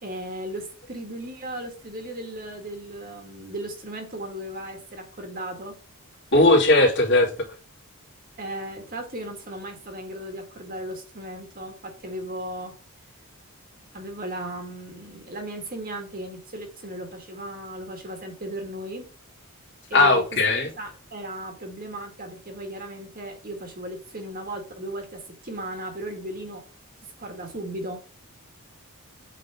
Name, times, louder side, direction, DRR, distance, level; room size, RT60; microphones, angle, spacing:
voice 1, 0.0-5.7 8.4-12.7 13.9-19.1 19.9-26.6 27.0-28.0, right 1 dB, 40° right, 4 dB, 1.8 m, -36 dB
voice 2, 6.3-7.3 19.9-20.7, left 2 dB, 50° left, -2 dB, 2.7 m, -18 dB
8.4 x 3.9 x 6.0 m, 0.37 s
head